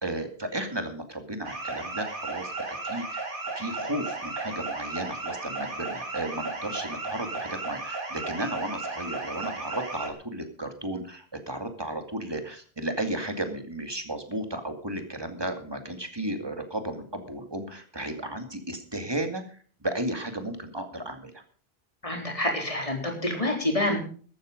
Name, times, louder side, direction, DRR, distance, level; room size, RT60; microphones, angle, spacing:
voice 1, 0.0-21.4, right 1 dB, 25° right, 6 dB, 2.3 m, -34 dB
sound 1, 1.4-10.1, right 3 dB, 55° right, 2.7 m, -35 dB
voice 2, 22.0-24.0, left 1 dB, 30° left, 3 dB, 4.0 m, -27 dB
14.0 x 12.5 x 5.1 m, 0.43 s
omnidirectional pair, 1.1 m